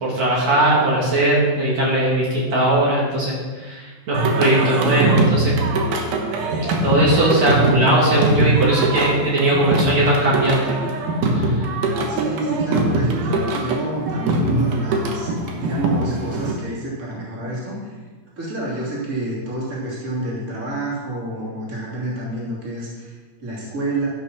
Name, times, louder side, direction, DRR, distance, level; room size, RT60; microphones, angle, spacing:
voice 1, 0.0-5.5 6.8-10.8 11.3-11.6, right 1 dB, 60° right, -5 dB, 3.3 m, -19 dB
Singing, 4.1-16.5, right 2 dB, 80° right, 2.8 m, -22 dB
voice 2, 11.9-18.0 18.4-24.1, right 2 dB, 30° right, -6 dB, 3.1 m, -28 dB
12.5 x 6.0 x 6.1 m, 1.4 s
omnidirectional pair, 3.5 m